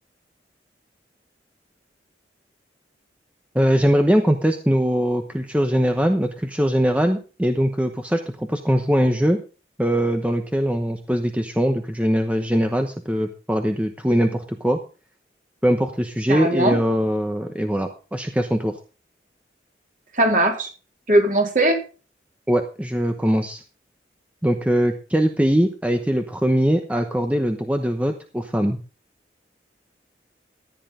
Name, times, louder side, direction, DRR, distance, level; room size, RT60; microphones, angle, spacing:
voice 1, 3.5-9.4 9.8-14.8 15.6-18.7 22.5-23.6 24.4-28.8, equal, 5° right, 5 dB, 0.9 m, -21 dB
voice 2, 16.3-16.8 20.1-20.7 21.1-21.8, right 1 dB, 45° right, 2 dB, 3.9 m, -19 dB
15.0 x 10.0 x 3.8 m, 0.35 s
head